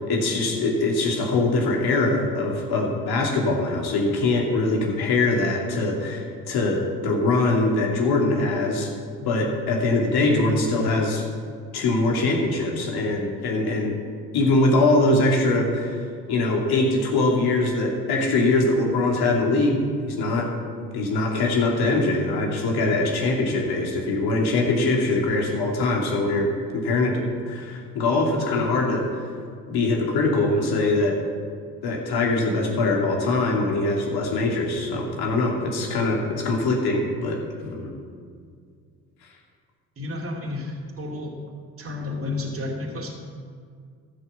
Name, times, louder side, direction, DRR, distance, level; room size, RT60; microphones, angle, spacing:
voice 1, 0.0-8.9 9.2-11.2 11.7-13.9 14.3-16.0 16.3-20.5 20.9-29.1 29.7-31.2 31.8-37.9, left 2 dB, 65° left, 0 dB, 2.7 m, -22 dB
voice 2, 40.0-41.4 41.8-43.1, left 2 dB, 35° right, -1 dB, 2.5 m, -31 dB
13.5 x 6.2 x 7.3 m, 2.1 s
hypercardioid pair, 60°, 40 cm